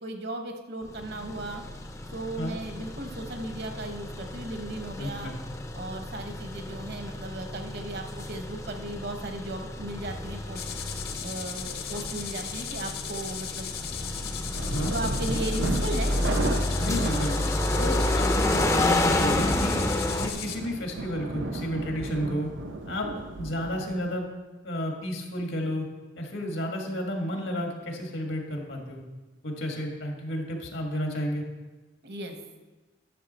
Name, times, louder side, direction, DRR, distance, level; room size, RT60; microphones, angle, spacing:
voice 1, 0.0-1.6 2.1-5.3 5.7-10.6 11.2-13.7 14.8-16.1 17.7-18.2 32.0-32.4, right 1 dB, 55° right, 5 dB, 1.0 m, -36 dB
sound 1, 0.9-20.3, left 1 dB, 15° left, 0.5 m, -30 dB
voice 2, 4.9-5.6 14.7-14.9 16.8-19.9 20.2-22.5 22.9-23.1 23.3-24.3 24.6-25.9 26.1-29.0 29.4-31.4, equal, 85° left, 2 dB, 1.7 m, -32 dB
sound 2, 10.5-20.6, left 8 dB, 55° left, 0.8 m, -37 dB
sound 3, 14.5-24.2, right 2 dB, 85° right, 0.7 m, -35 dB
11.0 x 6.7 x 4.2 m, 1.2 s
head